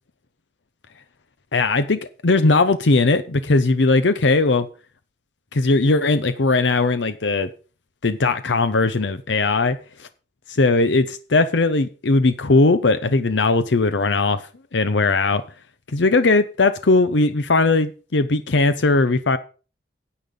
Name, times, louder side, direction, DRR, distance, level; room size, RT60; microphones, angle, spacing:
voice 1, 1.5-4.7 5.5-7.5 8.0-10.1 10.5-14.4 14.7-15.4 15.9-19.4, left 3 dB, 90° left, 0.8 m, -19 dB
9.9 x 8.5 x 5.3 m
head